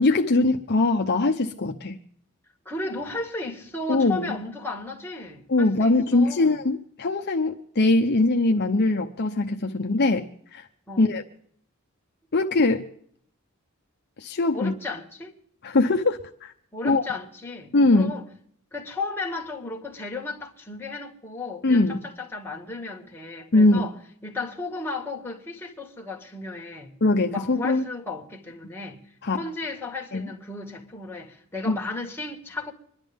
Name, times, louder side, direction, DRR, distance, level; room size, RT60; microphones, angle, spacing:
voice 1, 0.0-2.0 3.9-4.4 5.5-10.3 10.5-10.7 11.0-11.2 12.3-12.9 14.2-14.7 15.6-16.5 16.8-17.0 17.7-18.1 21.6-22.0 23.5-23.9 27.0-27.9 29.2-29.4 30.1-30.3 31.7-31.8, left 2 dB, 50° left, 0.8 m, -21 dB
voice 2, 2.7-6.6 10.9-11.1 14.5-15.3 16.7-18.2 18.7-23.9 24.2-26.9 27.3-29.0 29.3-32.7, left 3 dB, 10° left, 2.0 m, -34 dB
25.5 x 11.5 x 3.6 m
head